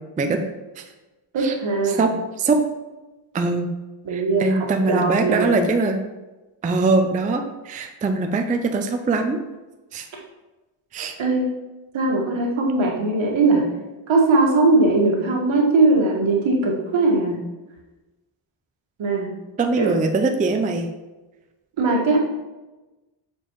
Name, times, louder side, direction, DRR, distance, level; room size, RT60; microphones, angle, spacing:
voice 1, 1.3-2.0 4.0-5.6 11.2-11.5 11.9-13.6 14.1-17.4 19.0-19.3 19.8-19.9 21.8-22.2, right 3 dB, 70° right, -1 dB, 1.6 m, -20 dB
voice 2, 3.3-3.7 4.1-6.0 6.6-9.4 9.9-10.1 10.9-11.1 19.6-20.9, right 3 dB, 20° right, 5 dB, 0.3 m, -22 dB
7.0 x 4.4 x 3.0 m, 1.1 s
cardioid pair, 125°, 48 cm